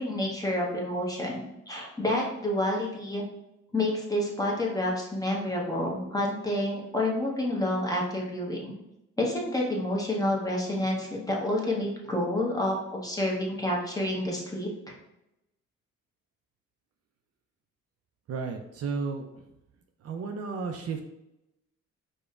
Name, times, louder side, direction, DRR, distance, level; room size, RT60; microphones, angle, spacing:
voice 1, 0.0-3.2 3.7-8.7 9.2-14.7, left 1 dB, 10° left, -2 dB, 0.9 m, -29 dB
voice 2, 18.3-19.4 20.0-21.0, right 5 dB, 55° right, 4 dB, 0.5 m, -33 dB
4.9 x 2.2 x 2.4 m, 0.88 s
cardioid pair, 90°, 30 cm